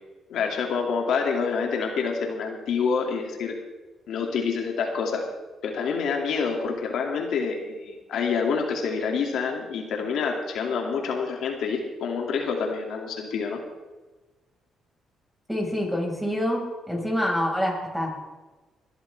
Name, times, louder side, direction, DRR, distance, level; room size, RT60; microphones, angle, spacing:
voice 1, 0.3-3.5 4.1-5.2 5.6-13.6, left 5 dB, 75° left, 1 dB, 2.4 m, -27 dB
voice 2, 15.5-18.1, equal, 5° right, 0 dB, 5.3 m, -26 dB
21.0 x 13.0 x 3.5 m, 1.2 s
cardioid pair, 90°, 0 cm